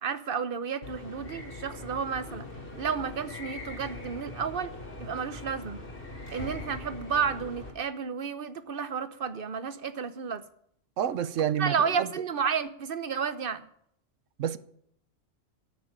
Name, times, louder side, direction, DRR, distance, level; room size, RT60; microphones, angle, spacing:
voice 1, 0.0-2.4 2.8-4.7 5.0-5.8 6.3-10.4 11.6-13.6, right 6 dB, 50° right, 1.1 m, -31 dB
sound 1, 0.8-7.7, left 2 dB, 45° left, 3.7 m, -42 dB
voice 2, 11.0-12.1 14.4-14.6, right 9 dB, 80° right, 1.1 m, -29 dB
12.5 x 9.0 x 9.0 m
omnidirectional pair, 1.3 m